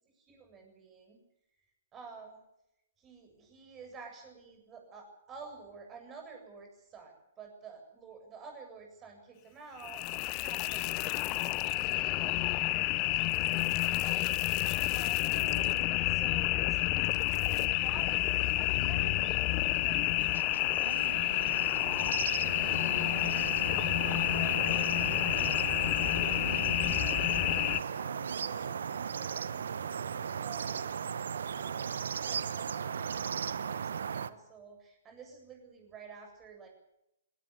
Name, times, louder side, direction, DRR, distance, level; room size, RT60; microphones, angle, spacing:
voice 1, 0.3-1.2 1.9-2.4 3.0-13.7 14.9-15.7 16.0-22.5 22.8-23.9 24.2-24.9 25.6-30.9 31.5-36.7, right 5 dB, 20° right, 3 dB, 7.9 m, -51 dB
sound 1, 9.8-27.8, left 19 dB, 30° left, 0.8 m, -29 dB
sound 2, 15.3-16.0 17.3-18.1 18.8-19.5 20.8-21.3 21.5-21.6 22.5-23.2 24.4-25.1 26.1-26.9 27.9-28.7, right 3 dB, 80° right, 1.9 m, -48 dB
sound 3, 19.2-34.3, right 7 dB, 65° right, 1.0 m, -37 dB
22.0 x 18.5 x 8.4 m, 0.85 s
figure-of-eight pair, 120°, 0 cm